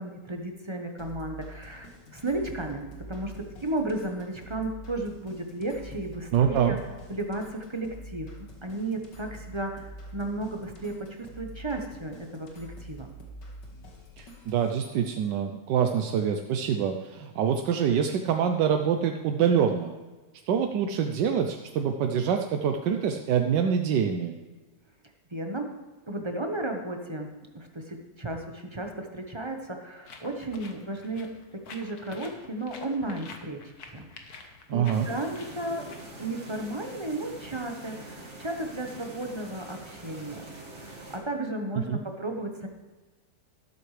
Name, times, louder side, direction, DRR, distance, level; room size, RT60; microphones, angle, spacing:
voice 1, 0.0-3.3 3.6-6.8 7.1-8.3 8.6-13.1 25.3-25.7 26.1-27.3 27.5-33.6 33.9-35.9 36.2-40.4 40.8-42.7, right 2 dB, 20° right, 3 dB, 0.9 m, -34 dB
sound 1, 1.0-14.7, right 1 dB, 80° left, 2.5 m, -46 dB
voice 2, 6.3-6.8 14.2-19.9 20.5-24.3 34.7-35.1 41.9-42.0, right 8 dB, 85° right, 5 dB, 1.3 m, -25 dB
sound 2, 30.0-37.0, left 4 dB, 60° left, 1.6 m, -49 dB
sound 3, 34.9-41.2, right 2 dB, 40° right, 2.6 m, -44 dB
12.5 x 12.0 x 3.3 m, 1.3 s
omnidirectional pair, 1.9 m